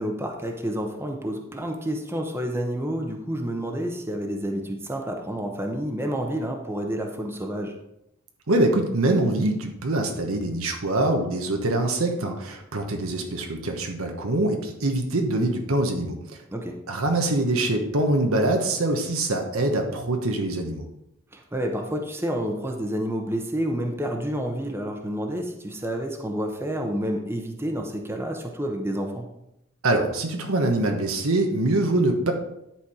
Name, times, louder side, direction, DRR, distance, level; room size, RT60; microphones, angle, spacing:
voice 1, 0.0-7.7 16.5-16.8 21.3-29.3, equal, 10° right, 2 dB, 0.8 m, -29 dB
voice 2, 8.5-16.2 16.9-20.8 29.8-32.3, right 2 dB, 85° right, 3 dB, 1.1 m, -24 dB
10.5 x 4.4 x 4.9 m, 0.85 s
head